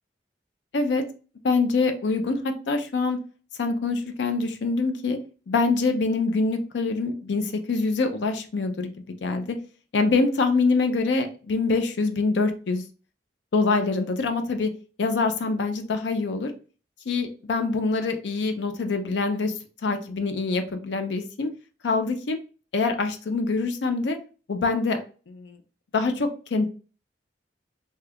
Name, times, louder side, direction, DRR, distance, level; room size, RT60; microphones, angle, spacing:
voice 1, 1.4-3.2 3.6-5.2 5.5-8.9 9.2-9.6 9.9-12.8 13.5-14.7 15.0-16.5 17.1-19.5 19.8-21.5 21.8-22.4 22.7-24.2 24.5-25.0 25.3-25.6 25.9-26.7, left 3 dB, 80° left, 7 dB, 0.5 m, -25 dB
2.7 x 2.4 x 3.4 m, 0.37 s
head